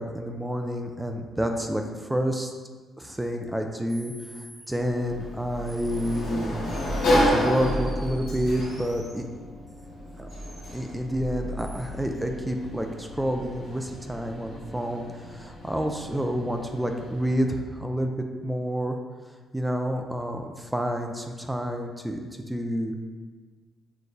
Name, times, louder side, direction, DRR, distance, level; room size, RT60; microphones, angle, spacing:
voice 1, 0.0-2.5 3.0-6.5 7.1-9.2 10.2-10.3 10.7-19.0 19.5-22.2 22.5-22.9, equal, 10° right, 4 dB, 0.3 m, -29 dB
sound 1, 3.9-4.7 5.7-6.2 6.7-9.2 10.3-10.9 11.6-11.9, right 1 dB, 35° right, 0.8 m, -49 dB
Sliding door, 4.7-17.4, equal, 75° left, 1.5 m, -31 dB
6.4 x 2.3 x 2.6 m, 1.4 s
cardioid pair, 90°, 0 cm